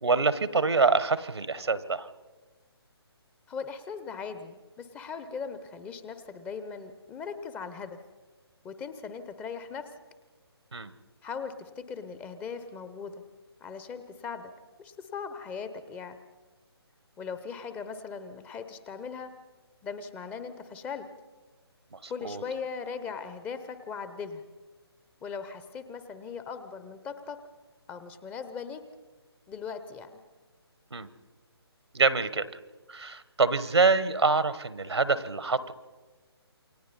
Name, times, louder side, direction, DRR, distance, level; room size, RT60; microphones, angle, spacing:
voice 1, 0.0-2.1 10.7-10.9 22.0-22.4 30.9-31.1 31.9-32.5 32.9-35.7, right 4 dB, 80° right, 15 dB, 1.3 m, -25 dB
voice 2, 3.5-8.0 8.6-9.9 11.2-13.2 13.6-14.5 14.8-16.2 17.2-19.3 19.8-21.1 22.1-24.4 25.2-27.4 27.9-28.8 29.5-30.1, left 5 dB, 10° left, 11 dB, 0.8 m, -39 dB
28.5 x 23.5 x 4.2 m, 1.3 s
figure-of-eight pair, 145°, 14 cm